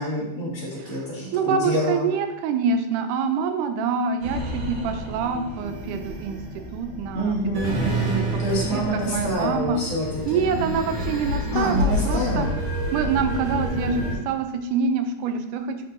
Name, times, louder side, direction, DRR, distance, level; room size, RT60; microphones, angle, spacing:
voice 1, 0.0-2.0 7.1-10.9 11.5-12.5, equal, 40° left, -6 dB, 1.7 m, -27 dB
voice 2, 1.3-6.4 6.7-7.9 8.5-9.8 10.3-12.5 12.9-15.8, right 5 dB, 85° right, 7 dB, 2.1 m, -26 dB
sound 1, 4.2-14.2, equal, 55° right, 1.5 m, -29 dB
7.9 x 5.4 x 2.6 m, 0.93 s
omnidirectional pair, 3.5 m